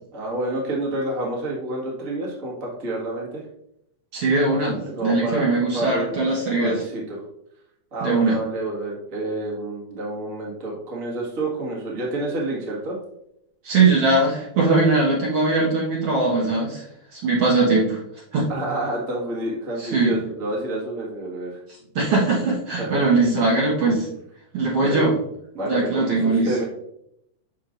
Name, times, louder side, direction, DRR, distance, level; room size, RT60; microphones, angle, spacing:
voice 1, 0.1-3.4 5.0-7.2 7.9-13.0 18.5-21.6 22.8-23.0 24.7-25.1 25.5-26.6, right 1 dB, 30° right, -4 dB, 1.9 m, -28 dB
voice 2, 4.1-6.8 8.0-8.4 13.6-16.8 17.1-18.0 18.3-18.5 19.8-20.1 22.0-24.1 24.5-25.2 25.7-26.6, right 3 dB, 55° right, -5 dB, 2.3 m, -20 dB
7.4 x 6.7 x 2.6 m, 0.77 s
omnidirectional pair, 3.4 m